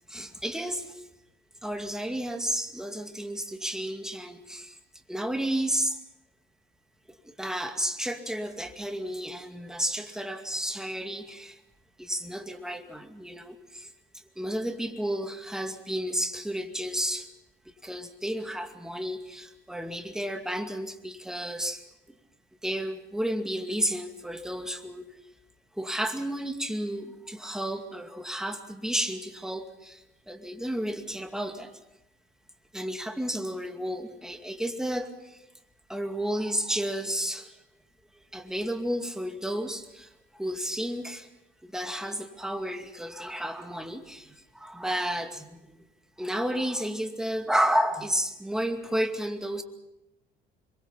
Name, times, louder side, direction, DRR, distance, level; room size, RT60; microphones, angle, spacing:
voice 1, 0.1-1.0 1.6-4.7 5.1-6.0 7.2-11.6 12.0-13.9 14.4-17.3 17.8-21.8 22.6-25.1 25.8-30.0 30.3-31.7 32.7-35.4 35.9-37.5 38.3-41.3 41.6-45.7 46.2-49.6, equal, 5° right, 5 dB, 2.4 m, -32 dB
25.5 x 23.5 x 5.8 m, 0.90 s
cardioid pair, 110°, 17 cm